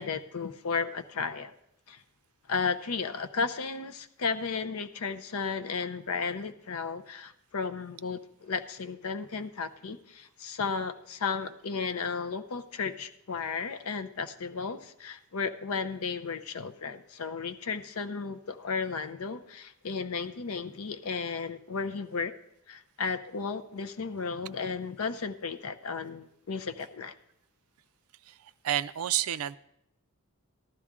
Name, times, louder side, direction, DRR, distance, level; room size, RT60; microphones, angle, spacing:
voice 1, 0.0-1.5 1.9-2.0 2.5-22.3 22.7-27.1, left 5 dB, 70° left, 11 dB, 0.6 m, -34 dB
voice 2, 28.6-29.6, right 12 dB, 70° right, 15 dB, 0.4 m, -29 dB
14.0 x 11.5 x 3.6 m, 0.78 s
head